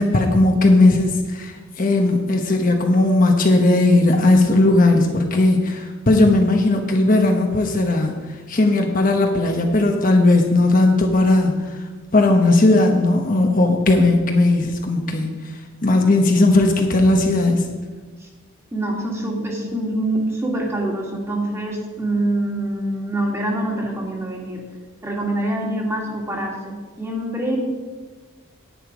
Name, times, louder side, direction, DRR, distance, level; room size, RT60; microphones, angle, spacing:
voice 1, 0.0-8.2 8.5-11.8 12.1-15.3 15.8-17.6, left 2 dB, 40° left, 3 dB, 0.9 m, -17 dB
voice 2, 18.7-24.6 25.0-27.6, right 1 dB, 15° right, 0 dB, 1.8 m, -25 dB
10.0 x 9.4 x 5.0 m, 1.3 s
head